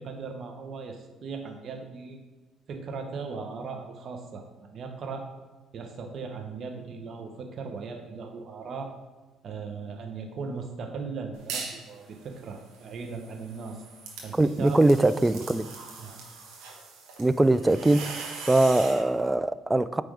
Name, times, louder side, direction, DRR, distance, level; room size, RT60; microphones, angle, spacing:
voice 1, 0.0-2.2 2.7-5.3 5.7-8.9 9.4-13.8 14.2-14.9 16.0-16.2, right 4 dB, 55° right, 0.9 m, -38 dB
sound 1, 11.3-11.9 12.3-19.1, right 4 dB, 85° right, 1.3 m, -41 dB
voice 2, 14.3-15.7 17.2-20.0, right 2 dB, 15° right, 0.3 m, -22 dB
9.0 x 3.4 x 4.9 m
supercardioid pair, 70°, 0 cm